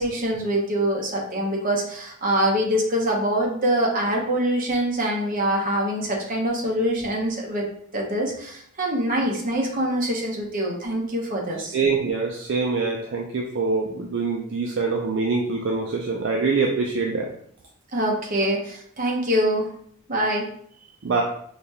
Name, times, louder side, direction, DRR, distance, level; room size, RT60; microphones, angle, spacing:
voice 1, 0.0-7.7 7.9-11.8 17.9-19.7 20.1-20.4, right 1 dB, 40° right, -1 dB, 0.8 m, -24 dB
voice 2, 11.7-17.3 21.0-21.2, right 4 dB, 55° right, 0 dB, 0.4 m, -24 dB
4.9 x 2.2 x 2.7 m, 0.65 s
head